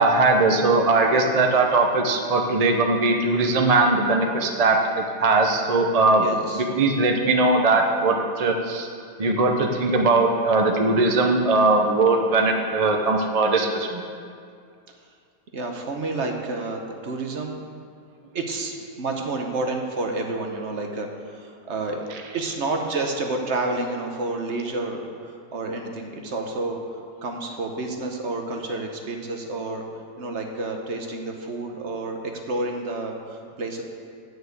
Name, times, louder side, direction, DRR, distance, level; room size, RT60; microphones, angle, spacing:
voice 1, 0.0-6.2 6.5-8.9 9.2-14.0, right 3 dB, 35° right, 2 dB, 0.7 m, -20 dB
voice 2, 6.2-6.6 15.5-17.6 18.3-22.0 22.3-26.8 27.2-29.8 30.2-32.2 32.5-33.8, right 2 dB, 55° right, 2 dB, 1.2 m, -29 dB
9.2 x 6.5 x 8.0 m, 2.3 s
omnidirectional pair, 1.5 m